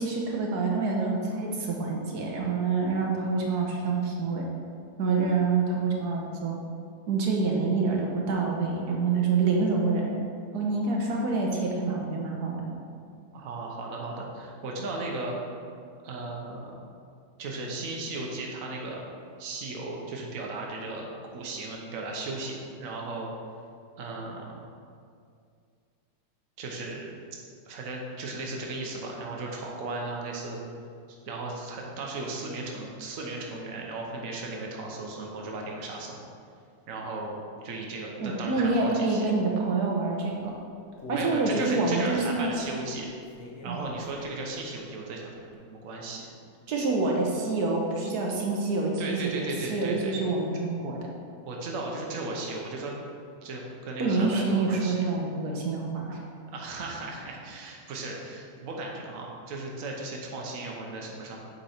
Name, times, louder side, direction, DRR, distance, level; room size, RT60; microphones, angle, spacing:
voice 1, 0.0-4.5 5.0-6.6 7.1-10.1 10.5-12.7 38.2-40.5 41.1-42.5 43.6-43.8 46.7-51.0 54.0-56.2, right 3 dB, 80° right, -1 dB, 1.4 m, -27 dB
voice 2, 13.3-15.4 16.0-16.8 17.4-19.0 19.4-21.1 21.3-23.3 24.0-24.6 26.6-27.1 27.7-30.6 31.1-36.2 36.9-37.4 37.6-39.3 41.1-43.1 43.6-46.3 49.0-50.1 51.4-52.9 53.4-55.1 56.5-61.4, right 2 dB, 60° right, -1 dB, 1.3 m, -36 dB
Human voice, 40.4-44.6 45.0-45.1 45.5-45.6, left 2 dB, 50° left, 1.0 m, -44 dB
8.0 x 4.5 x 4.3 m, 2.3 s
omnidirectional pair, 1.7 m